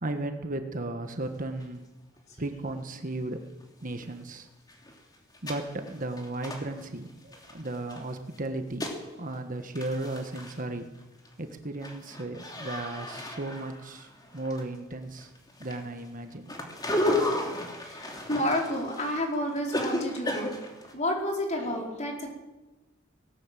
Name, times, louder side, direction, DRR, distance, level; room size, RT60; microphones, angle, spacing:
voice 1, 0.0-1.9 2.4-3.4 3.8-4.5 5.4-10.9 11.4-15.3 15.6-16.5, right 2 dB, 40° right, 6 dB, 1.5 m, -35 dB
sound 1, 1.6-1.7 2.2-2.3 3.6-3.7 4.0-4.1 4.5-8.0 8.3-9.1 9.3-9.4 9.6-10.6 11.0-11.3 11.6-14.9 15.2-20.9, left 1 dB, 20° left, 3.1 m, -34 dB
voice 2, 17.8-20.6 20.9-22.3, left 1 dB, 35° left, 0 dB, 4.7 m, -30 dB
18.5 x 18.5 x 7.7 m, 1.1 s
head